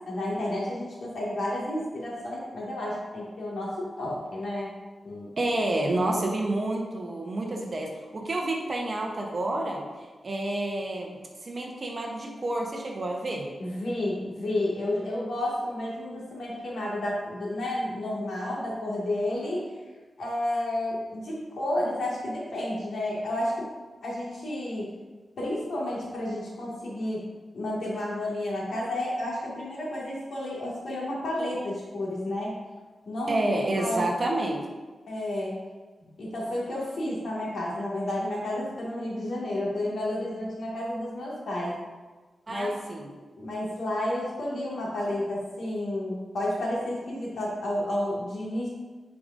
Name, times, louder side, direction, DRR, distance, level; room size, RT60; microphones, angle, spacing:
voice 1, 0.1-4.7 5.0-5.3 13.6-19.6 20.2-23.5 24.0-24.9 25.4-27.2 27.5-32.6 33.1-34.1 35.1-35.6 36.0-41.7 42.5-42.7 43.4-48.7, left 1 dB, 70° left, -5 dB, 1.9 m, -31 dB
voice 2, 5.4-13.5 33.3-34.6 42.5-43.1, right 1 dB, 35° right, 0 dB, 0.9 m, -29 dB
9.2 x 4.8 x 2.6 m, 1.3 s
wide cardioid pair, 170°, 0 cm